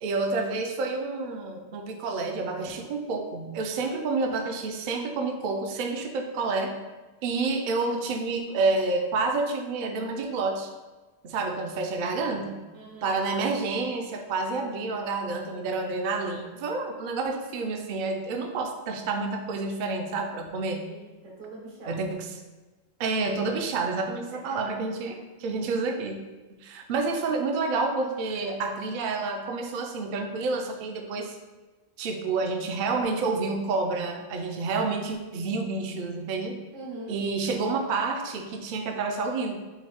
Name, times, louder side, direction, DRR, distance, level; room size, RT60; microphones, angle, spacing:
voice 1, 0.0-6.8 7.2-10.7 11.2-12.6 13.0-20.9 21.9-22.3 23.0-26.2 26.5-31.4 32.0-36.6 37.1-39.6, right 3 dB, 60° right, 3 dB, 0.5 m, -29 dB
voice 2, 12.7-13.1 20.6-22.1 24.3-24.6 36.7-37.2, right 2 dB, 90° right, -3 dB, 1.4 m, -43 dB
4.6 x 2.6 x 3.4 m, 1.2 s
omnidirectional pair, 1.3 m